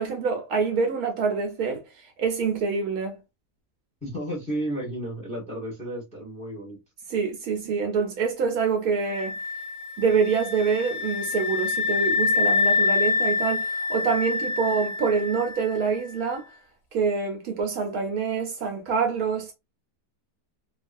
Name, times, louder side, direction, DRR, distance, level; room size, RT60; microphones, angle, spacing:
voice 1, 0.0-1.8 2.2-3.2 7.1-9.3 10.0-16.4 16.9-19.5, right 5 dB, 70° right, 1.0 m, -26 dB
voice 2, 4.0-6.8, right 1 dB, 5° left, 0.9 m, -32 dB
sound 1, 9.0-15.8, left 4 dB, 70° left, 0.9 m, -26 dB
2.9 x 2.3 x 2.5 m
omnidirectional pair, 1.7 m